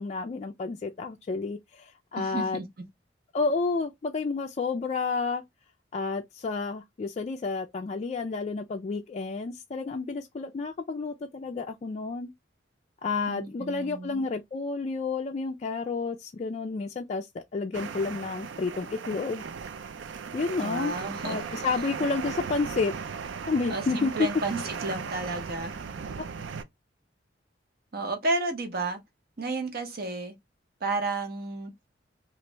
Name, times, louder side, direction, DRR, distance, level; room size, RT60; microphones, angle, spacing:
voice 1, 0.0-2.6 3.3-5.4 5.9-12.3 13.0-19.4 20.3-21.0 21.2-22.9 23.5-24.3 26.2-26.3, left 4 dB, 35° left, 0.3 m, -30 dB
voice 2, 2.2-2.6 13.3-14.2 20.6-21.4 23.7-25.8 27.9-29.0 29.4-30.3 30.8-31.7, right 2 dB, 55° right, 0.8 m, -32 dB
sound 1, 17.7-26.6, right 6 dB, 70° right, 0.4 m, -37 dB
3.0 x 2.5 x 3.2 m
head